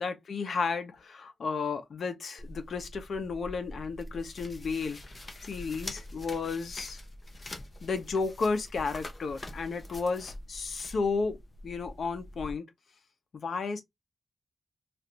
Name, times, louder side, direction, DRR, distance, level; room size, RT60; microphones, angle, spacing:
voice 1, 0.0-5.0 5.4-7.0 7.8-11.4 11.6-12.6 13.3-13.8, left 4 dB, 65° left, 0.8 m, -33 dB
sound 1, 2.4-12.5, left 1 dB, 35° left, 0.7 m, -45 dB
3.2 x 2.5 x 2.9 m
wide cardioid pair, 125°, 0 cm